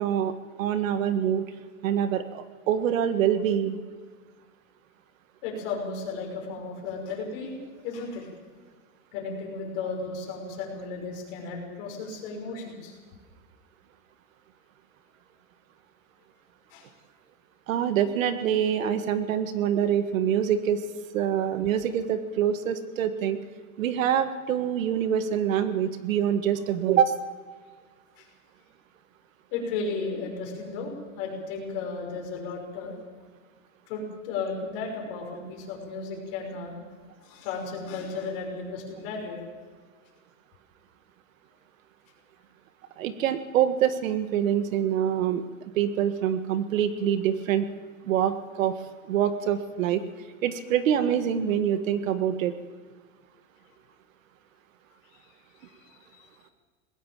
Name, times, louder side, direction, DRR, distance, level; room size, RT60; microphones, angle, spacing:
voice 1, 0.0-1.4 1.8-3.8 17.7-20.8 21.1-23.4 23.8-27.2 43.0-45.4 45.7-47.7 48.1-48.8 49.1-50.1 50.4-52.5, right 9 dB, 70° right, 10 dB, 1.6 m, -25 dB
voice 2, 5.4-7.6 7.8-8.3 9.1-13.0 16.7-16.9 28.2-28.3 29.5-32.9 33.9-36.8 37.2-39.4 55.1-55.2 55.6-56.3, left 4 dB, 40° left, 0 dB, 6.0 m, -34 dB
20.5 x 17.5 x 7.4 m, 1.5 s
supercardioid pair, 180°, 42 cm